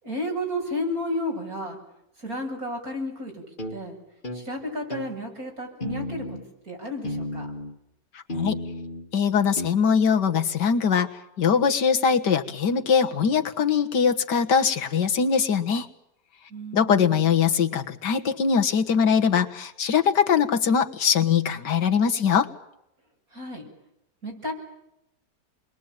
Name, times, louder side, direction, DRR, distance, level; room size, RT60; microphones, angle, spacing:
voice 1, 0.0-1.8 2.2-3.4 3.7-4.0 4.3-6.4 6.7-7.5 16.5-17.3 23.3-23.7 24.2-24.5, left 1 dB, 55° right, 1 dB, 7.8 m, -32 dB
sound 1, 3.6-3.8 4.2-4.5 4.9-5.1 5.8-6.5 7.0-7.8 8.3-9.1 9.6-9.7, left 1 dB, 30° left, 2.0 m, -33 dB
voice 2, 9.1-11.1 11.4-15.9 16.7-22.5, left 6 dB, 75° left, 5 dB, 2.0 m, -22 dB
29.0 x 22.0 x 9.0 m, 0.84 s
omnidirectional pair, 1.9 m